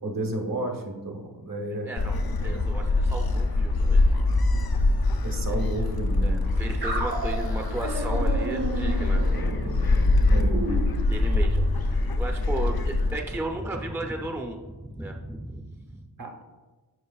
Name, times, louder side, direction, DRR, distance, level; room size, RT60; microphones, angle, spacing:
voice 1, 0.0-1.9 2.4-2.6 5.2-6.4 10.3-10.6 16.2-16.4, right 1 dB, 55° right, 3 dB, 1.1 m, -32 dB
voice 2, 1.8-4.4 4.8-5.6 6.2-9.2 9.9-10.0 11.0-16.1, right 2 dB, 5° right, 2 dB, 0.6 m, -35 dB
Gull seagull, 2.0-13.2, left 2 dB, 60° left, 0.6 m, -24 dB
sound 1, 6.8-11.7, right 2 dB, 75° right, 1.3 m, -32 dB
11.0 x 4.5 x 2.4 m, 1.2 s
wide cardioid pair, 50°, 41 cm